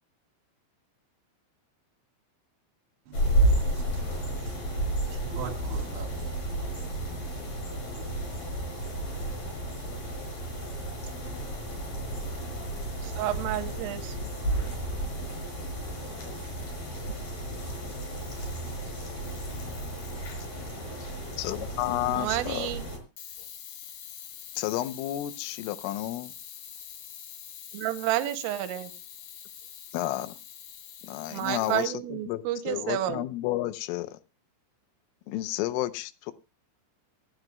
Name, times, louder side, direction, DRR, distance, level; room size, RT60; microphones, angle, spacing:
sound 1, 3.1-23.0, right 1 dB, 35° left, 5.9 m, -32 dB
voice 1, 3.1-4.8 5.1-7.3, right 6 dB, 65° right, 4.1 m, -44 dB
voice 2, 13.0-14.2 22.1-22.8 27.7-28.9 31.3-33.3, right 13 dB, 85° right, 3.4 m, -30 dB
Camera, 18.0-18.8 19.2-20.8 23.2-31.9, left 10 dB, 65° left, 2.8 m, -45 dB
voice 3, 21.4-22.7 24.6-26.3 29.9-30.3 31.0-34.2 35.3-36.3, left 15 dB, 85° left, 3.3 m, -31 dB
26.5 x 8.9 x 2.2 m
omnidirectional pair, 5.8 m